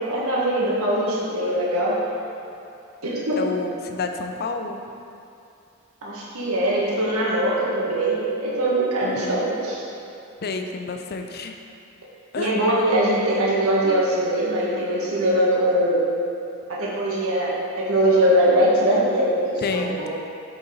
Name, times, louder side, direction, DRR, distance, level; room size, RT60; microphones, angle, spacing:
voice 1, 0.0-1.9 3.0-3.4 6.0-9.8 12.4-16.0 16.7-20.1, right 1 dB, 85° right, -6 dB, 1.8 m, -22 dB
voice 2, 3.4-4.8 9.0-9.4 10.4-11.6 12.3-12.6 19.6-20.1, left 3 dB, 50° left, 5 dB, 0.5 m, -29 dB
8.1 x 5.4 x 4.0 m, 2.6 s
head